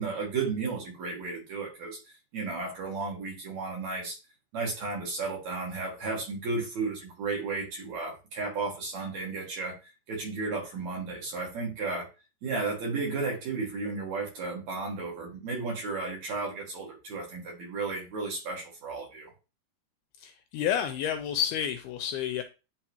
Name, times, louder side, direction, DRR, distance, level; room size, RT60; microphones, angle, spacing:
voice 1, 0.0-2.0 2.3-4.2 4.5-12.1 12.4-19.3, right 4 dB, 55° right, -1 dB, 2.5 m, -33 dB
voice 2, 20.2-22.4, left 9 dB, 80° left, 8 dB, 2.3 m, -30 dB
10.5 x 3.9 x 3.0 m, 0.30 s
omnidirectional pair, 4.9 m